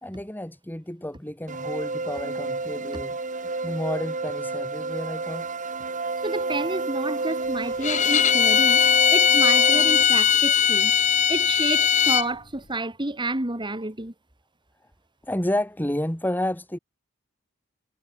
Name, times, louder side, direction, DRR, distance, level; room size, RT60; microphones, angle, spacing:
voice 1, 0.0-3.2 3.6-5.5 15.2-16.8, left 1 dB, 10° left, 2.3 m, -30 dB
sound 1, 1.5-10.0, right 3 dB, 40° right, 2.9 m, -30 dB
voice 2, 6.2-8.8 9.1-11.0 11.3-14.1, right 2 dB, 25° right, 2.4 m, -29 dB
Bowed string instrument, 7.8-12.3, left 8 dB, 35° left, 1.0 m, -19 dB
head